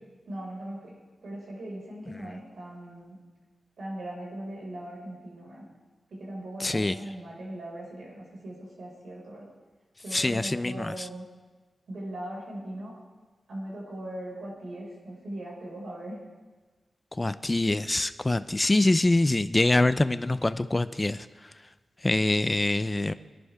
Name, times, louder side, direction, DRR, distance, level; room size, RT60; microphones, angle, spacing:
voice 1, 0.2-0.9 1.2-3.2 3.8-5.6 6.1-9.5 10.0-11.2 11.9-13.0 13.5-16.2, right 1 dB, 80° right, -4 dB, 5.4 m, -39 dB
voice 2, 6.6-7.0 10.1-10.9 17.2-21.3 22.0-23.1, left 2 dB, 25° left, 13 dB, 0.6 m, -24 dB
21.5 x 11.0 x 3.6 m, 1.3 s
cardioid pair, 70°, 0 cm